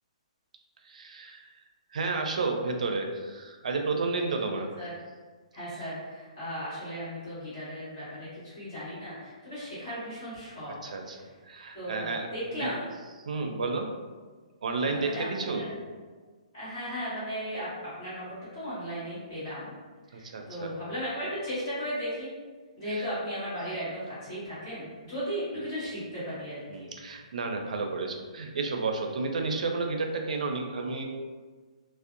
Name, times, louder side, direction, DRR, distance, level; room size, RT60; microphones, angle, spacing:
voice 1, 0.8-1.5 1.9-4.7 10.8-11.2 11.5-12.3 12.6-12.7 13.3-13.9 14.6-15.6 20.1-20.7 22.9-23.1 26.7-31.0, right 3 dB, 75° right, 3 dB, 0.4 m, -31 dB
voice 2, 4.5-4.9 5.5-10.7 11.1-11.3 11.7-12.9 14.9-15.8 16.5-19.7 20.1-22.3 22.8-26.9, equal, 35° left, -11 dB, 1.3 m, -36 dB
2.6 x 2.0 x 2.5 m, 1.4 s
hypercardioid pair, 170°, 4 cm